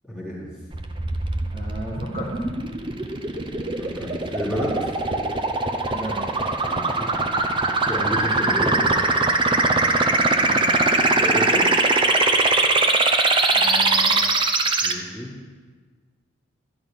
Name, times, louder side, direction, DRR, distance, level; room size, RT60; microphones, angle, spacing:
voice 1, 0.1-0.5 3.8-4.9 6.6-7.1 7.8-8.8 11.1-11.7 14.8-15.3, equal, 5° right, -7 dB, 3.8 m, -30 dB
sound 1, 0.7-14.9, right 3 dB, 25° right, 0.7 m, -21 dB
voice 2, 1.5-2.3 5.9-6.2 10.3-10.6 13.5-14.2, right 1 dB, 40° right, -6 dB, 3.1 m, -34 dB
13.5 x 6.2 x 9.5 m, 1.4 s
head